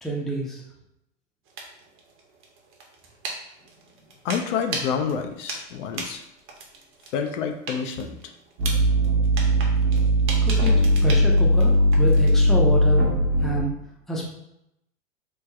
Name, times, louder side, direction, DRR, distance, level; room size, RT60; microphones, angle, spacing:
voice 1, 0.0-0.6 10.4-13.1 13.4-13.7 14.1-14.3, right 1 dB, ahead, -3 dB, 0.5 m, -28 dB
sound 1, 1.5-12.5, right 3 dB, 35° right, 0.7 m, -38 dB
voice 2, 4.2-6.2 7.1-8.3, left 7 dB, 70° left, 6 dB, 0.5 m, -28 dB
sound 2, 8.6-13.6, equal, 65° right, 1.0 m, -19 dB
3.2 x 2.1 x 3.5 m, 0.82 s
hypercardioid pair, 115°, 38 cm